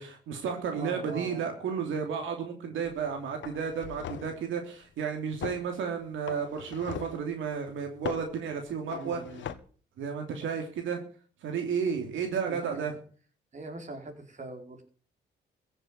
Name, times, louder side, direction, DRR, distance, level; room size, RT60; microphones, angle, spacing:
voice 1, 0.0-9.2 10.0-11.0 11.4-13.0, right 6 dB, 80° right, 4 dB, 3.1 m, -32 dB
voice 2, 0.7-1.5 8.9-9.5 12.5-12.9 13.5-14.8, right 2 dB, 35° right, 4 dB, 4.8 m, -42 dB
sound 1, 2.9-3.1 3.4-4.4 5.4-5.7 6.3-7.2 8.0-8.3 8.9-9.6, left 9 dB, 70° left, 1.5 m, -39 dB
15.5 x 7.8 x 9.5 m, 0.43 s
cardioid pair, 90°, 20 cm